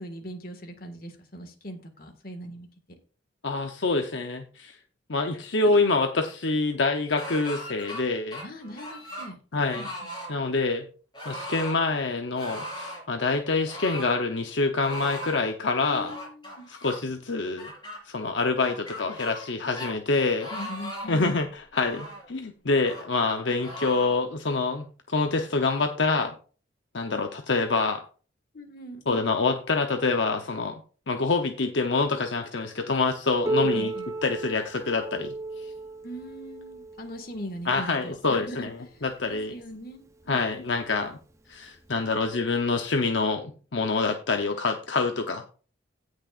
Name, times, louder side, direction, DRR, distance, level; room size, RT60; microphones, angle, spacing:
voice 1, 0.0-2.7 8.4-9.4 9.7-10.1 15.8-16.7 20.5-21.4 28.5-29.0 33.5-34.1 36.0-40.5, equal, 50° left, 5 dB, 1.9 m, -40 dB
voice 2, 3.4-4.8 5.1-8.4 9.5-9.9 10.3-10.9 11.2-16.1 16.7-17.7 18.0-20.5 21.1-21.5 21.7-26.3 26.9-28.0 29.1-30.8 31.1-33.9 34.2-35.7 37.7-38.8 39.0-39.5 40.3-41.2 41.5-45.4, left 3 dB, 70° left, 5 dB, 0.9 m, -26 dB
sound 1, 7.1-8.0 8.3-9.3 9.7-10.3 11.1-11.8 12.4-13.0 13.7-14.2 14.8-15.4 16.0-17.0 17.6-18.0 18.6-19.5 19.8-19.9 20.4-21.2 21.7-22.3 22.8-23.1 23.6-24.2, equal, 25° left, 5.0 m, -38 dB
Piano, 33.4-38.8 39.6-39.7 40.2-40.3 41.1-41.2 42.2-42.3, right 2 dB, 15° right, 0.7 m, -34 dB
17.0 x 6.4 x 2.5 m, 0.39 s
head